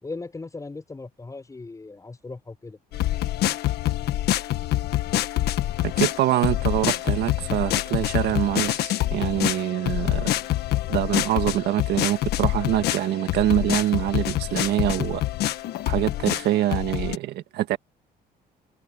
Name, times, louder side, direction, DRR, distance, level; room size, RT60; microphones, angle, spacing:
voice 1, 0.0-2.8, left 3 dB, 20° left, 6.3 m, -38 dB
sound 1, 2.9-17.2, left 14 dB, 75° left, 1.4 m, -26 dB
voice 2, 5.8-10.4 10.9-15.2 15.9-17.8, right 14 dB, 75° right, 1.7 m, -25 dB
cardioid pair, 110°, 17 cm